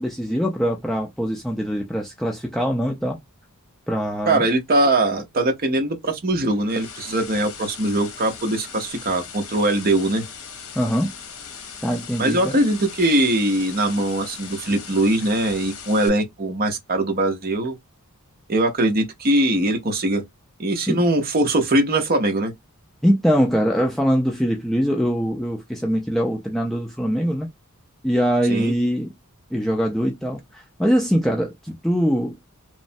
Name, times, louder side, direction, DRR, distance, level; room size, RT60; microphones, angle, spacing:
voice 1, 0.0-3.2 3.9-4.4 10.8-11.1 11.8-12.6 20.9-21.0 23.0-27.5 28.0-29.1 29.5-32.4, equal, ahead, 0.4 m, -22 dB
voice 2, 4.3-10.2 12.2-17.8 18.5-20.2 20.6-22.5 28.5-28.7, right 1 dB, 40° right, 0.6 m, -21 dB
sound 1, 6.3-16.1, left 6 dB, 70° left, 0.8 m, -39 dB
3.1 x 2.0 x 2.6 m
head